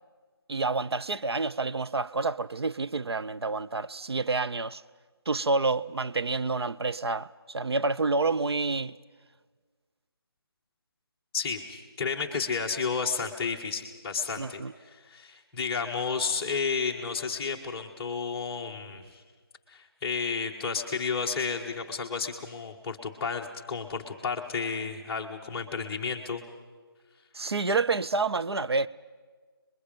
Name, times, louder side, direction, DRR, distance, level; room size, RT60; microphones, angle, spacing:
voice 1, 0.5-4.8 5.3-8.9 14.4-14.7 27.3-28.9, right 3 dB, 80° right, 0.6 m, -28 dB
voice 2, 11.3-19.2 19.7-26.4, left 5 dB, 10° left, 0.9 m, -32 dB
29.0 x 21.5 x 5.2 m
figure-of-eight pair, 165°, 13 cm